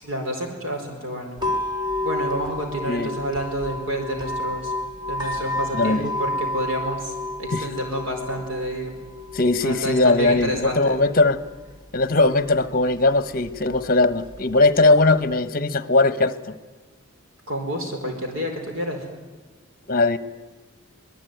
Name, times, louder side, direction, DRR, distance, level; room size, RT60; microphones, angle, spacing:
voice 1, 0.0-1.4 2.0-4.7 5.1-7.1 7.4-8.9 9.6-11.0 17.5-19.0, equal, 60° right, 3 dB, 4.6 m, -29 dB
sound 1, 1.4-15.4, left 1 dB, 20° right, 4.9 m, -32 dB
voice 2, 5.7-6.1 7.5-7.7 9.3-11.4 11.9-16.5 19.9-20.2, left 2 dB, 40° left, 13 dB, 1.2 m, -19 dB
24.0 x 20.5 x 9.3 m, 1.3 s
head